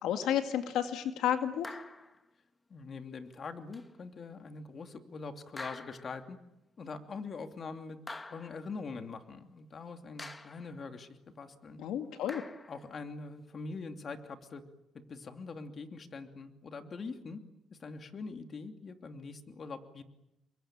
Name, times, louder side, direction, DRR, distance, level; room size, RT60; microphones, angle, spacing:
voice 1, 0.0-1.7 11.8-12.4, left 10 dB, 85° left, 7 dB, 2.1 m, -31 dB
sound 1, 1.6-2.2 3.7-3.9 5.6-6.3 8.1-8.7 10.2-10.8 12.3-12.9, left 2 dB, 20° left, 2.0 m, -46 dB
voice 2, 2.7-6.4 6.8-8.0 8.3-11.8 12.7-14.6 14.9-17.4 17.7-20.0, left 4 dB, 45° left, 6 dB, 2.8 m, -43 dB
29.0 x 23.0 x 9.0 m, 0.88 s
cardioid pair, 90°, 0 cm